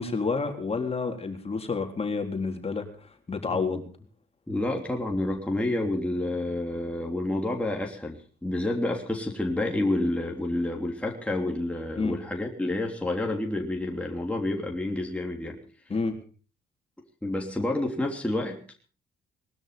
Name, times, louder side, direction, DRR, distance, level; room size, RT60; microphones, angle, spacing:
voice 1, 0.0-3.8 12.0-12.2 15.9-16.2, left 4 dB, 30° left, 4 dB, 3.9 m, -29 dB
voice 2, 4.5-15.6 17.2-18.6, left 1 dB, 5° left, 0 dB, 3.2 m, -29 dB
21.0 x 12.5 x 5.2 m, 0.40 s
cardioid pair, 90°, 20 cm